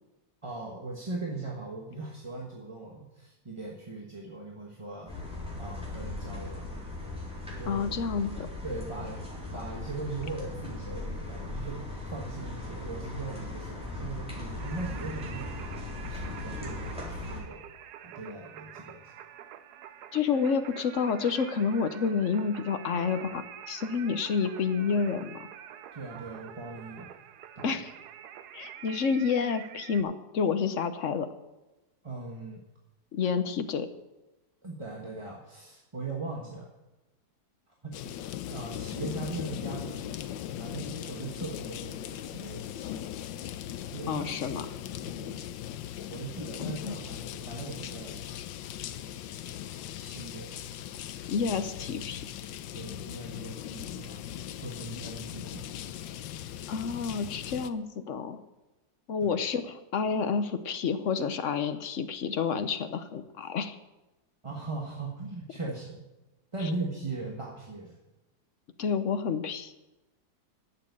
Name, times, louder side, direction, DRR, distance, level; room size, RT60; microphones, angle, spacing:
voice 1, 0.4-6.8 7.6-7.8 8.6-9.2 9.5-15.6 16.0-17.6 18.0-19.1 25.9-27.1 27.5-27.8 32.0-32.6 34.6-36.7 37.8-38.0 38.5-40.2 40.6-43.1 43.9-44.2 45.0-45.4 46.1-48.2 50.0-50.6 52.7-54.2 54.6-55.7 59.2-59.3 64.4-66.1 66.5-68.0, right 3 dB, 20° right, -2 dB, 1.3 m, -39 dB
sound 1, 5.1-17.4, left 2 dB, 5° right, 3.9 m, -38 dB
voice 2, 7.7-8.5 20.1-25.5 27.6-27.9 28.5-31.3 33.1-33.9 44.1-44.8 46.6-47.0 51.3-52.3 56.7-58.4 59.1-63.7 68.8-69.8, left 6 dB, 55° left, 9 dB, 0.9 m, -29 dB
Singing, 14.6-30.0, right 10 dB, 65° right, 1.1 m, -47 dB
sound 2, 37.9-57.7, left 11 dB, 85° left, 1.3 m, -39 dB
11.5 x 7.5 x 8.2 m, 1.0 s
omnidirectional pair, 2.0 m